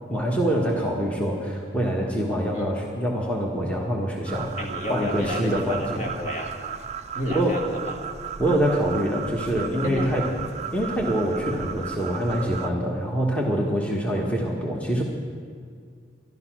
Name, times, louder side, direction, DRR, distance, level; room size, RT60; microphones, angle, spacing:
voice 1, 0.1-4.6 4.9-6.0 7.3-7.7 8.4-10.3 10.7-15.0, equal, 5° left, -2 dB, 1.3 m, -25 dB
sound 1, 4.3-12.7, right 7 dB, 35° right, 0.4 m, -35 dB
voice 2, 4.6-6.6 7.1-8.0 9.8-10.3, equal, 40° left, 0 dB, 1.7 m, -31 dB
12.5 x 12.0 x 6.1 m, 2.1 s
head